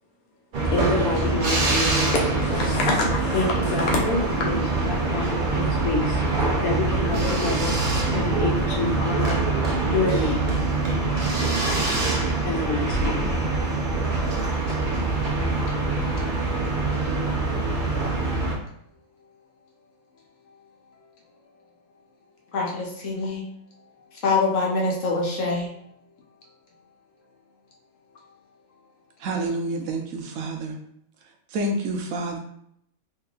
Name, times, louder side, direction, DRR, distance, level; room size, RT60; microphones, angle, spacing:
sound 1, 0.5-18.5, right 3 dB, 50° right, 0.6 m, -24 dB
voice 1, 0.7-7.7 8.1-9.4 9.8-10.5 12.4-13.3, left 2 dB, 85° left, 1.2 m, -27 dB
voice 2, 22.5-23.4 24.2-25.7, left 3 dB, 65° left, 1.1 m, -24 dB
voice 3, 29.2-30.8 31.5-32.4, right 2 dB, 75° right, 1.0 m, -28 dB
3.6 x 3.0 x 2.4 m
omnidirectional pair, 1.5 m